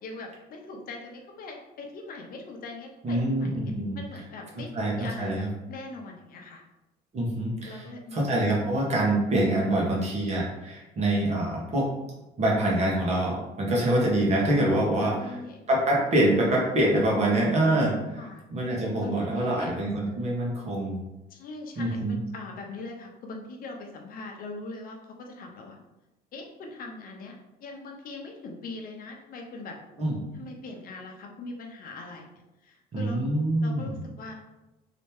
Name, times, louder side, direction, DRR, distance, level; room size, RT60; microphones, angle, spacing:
voice 1, 0.0-3.5 4.0-6.6 7.6-8.2 15.0-15.6 18.1-18.4 19.0-19.7 21.3-25.8 26.3-29.8 30.3-32.3 32.6-33.2 33.6-34.4, left 3 dB, 60° left, 2 dB, 0.8 m, -41 dB
voice 2, 3.0-4.0 4.7-5.5 7.1-7.8 8.1-11.9 12.4-15.3 15.7-18.2 18.5-21.0 21.8-22.2 30.0-30.2 32.9-33.9, right 1 dB, 40° right, -4 dB, 1.4 m, -25 dB
3.2 x 3.0 x 3.5 m, 0.99 s
cardioid pair, 110°, 17 cm